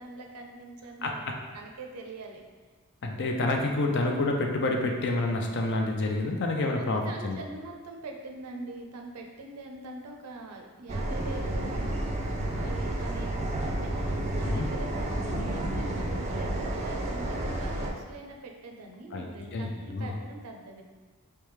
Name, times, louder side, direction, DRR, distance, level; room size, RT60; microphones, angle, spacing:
voice 1, 0.0-2.4 6.7-13.4 13.8-20.8, right 3 dB, 90° right, 2 dB, 0.5 m, -43 dB
voice 2, 3.0-7.4 14.4-14.7 19.1-20.1, left 2 dB, 50° left, 2 dB, 0.5 m, -28 dB
sound 1, 10.9-17.9, right 1 dB, 30° right, 0.4 m, -31 dB
3.4 x 3.3 x 3.1 m, 1.3 s
head